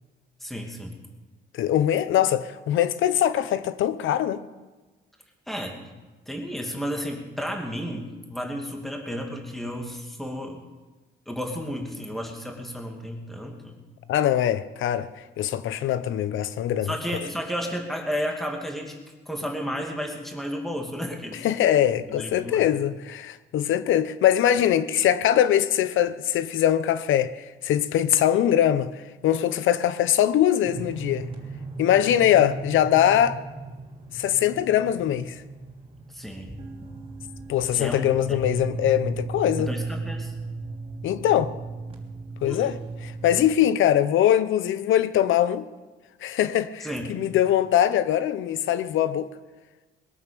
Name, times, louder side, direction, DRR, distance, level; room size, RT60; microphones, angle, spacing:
voice 1, 0.4-1.0 5.5-5.8 6.3-10.6 11.3-13.8 16.8-19.0 19.3-21.4 22.1-22.7 36.1-36.6 37.7-38.4 39.6-40.3 42.5-42.7 46.8-47.1, equal, ahead, 2.5 m, -32 dB
voice 2, 1.5-4.4 14.1-15.1 15.4-17.0 21.4-31.3 31.8-33.4 34.1-35.4 37.5-39.7 41.0-41.5 42.4-42.8 43.0-45.7 46.2-49.3, left 11 dB, 80° left, 0.9 m, -22 dB
sound 1, 30.6-43.5, right 3 dB, 30° right, 3.2 m, -36 dB
21.0 x 9.1 x 6.9 m
cardioid pair, 90°, 20 cm